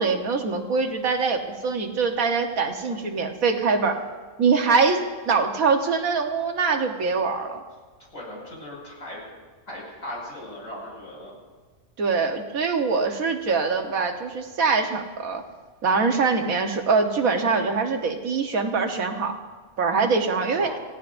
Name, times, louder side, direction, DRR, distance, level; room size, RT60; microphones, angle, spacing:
voice 1, 0.0-4.0 4.4-7.6 12.0-15.4 15.8-19.4 19.8-20.7, right 4 dB, 90° right, 4 dB, 1.7 m, -23 dB
voice 2, 2.6-3.0 8.1-9.2 9.7-11.3 20.3-20.8, left 1 dB, 75° left, -3 dB, 6.1 m, -38 dB
27.0 x 17.0 x 2.6 m, 1.4 s
omnidirectional pair, 1.4 m